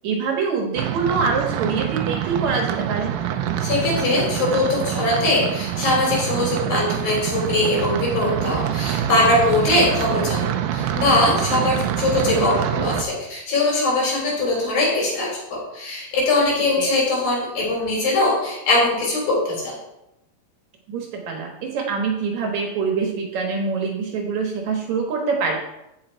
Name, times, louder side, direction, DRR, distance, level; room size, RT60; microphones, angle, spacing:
voice 1, 0.0-3.2 16.8-16.9 20.9-25.6, right 5 dB, 65° right, 1 dB, 2.3 m, -25 dB
sound 1, 0.8-13.0, right 10 dB, 85° right, 2.4 m, -25 dB
voice 2, 3.6-19.8, left 2 dB, 75° left, -3 dB, 5.2 m, -21 dB
15.0 x 5.1 x 4.5 m, 0.90 s
omnidirectional pair, 4.0 m